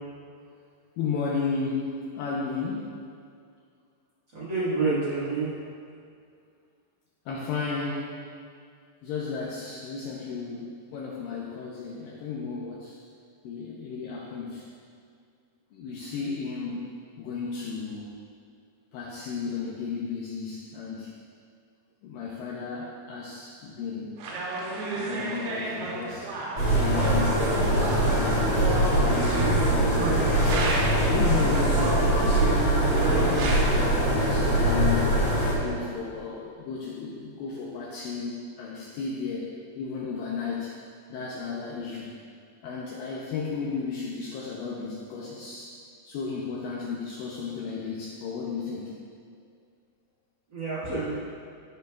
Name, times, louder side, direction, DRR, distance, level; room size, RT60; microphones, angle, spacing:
voice 1, 1.0-2.9 7.3-8.2 9.0-13.0 13.4-14.7 15.7-16.9 17.2-18.1 18.9-21.2 22.0-24.2 25.0-26.4 26.7-32.5 32.9-35.1 35.6-40.7 41.1-42.1 42.6-45.8 46.0-49.0, left 5 dB, 80° left, -4 dB, 2.2 m, -34 dB
voice 2, 4.3-5.5 50.5-51.2, right 3 dB, 55° right, -12 dB, 1.3 m, -28 dB
sound 1, 24.2-31.2 31.7-33.6, right 3 dB, 85° right, 2.9 m, -32 dB
sound 2, 26.6-35.5, right 1 dB, 35° left, 1.7 m, -23 dB
14.5 x 5.3 x 2.3 m, 2.3 s
omnidirectional pair, 4.5 m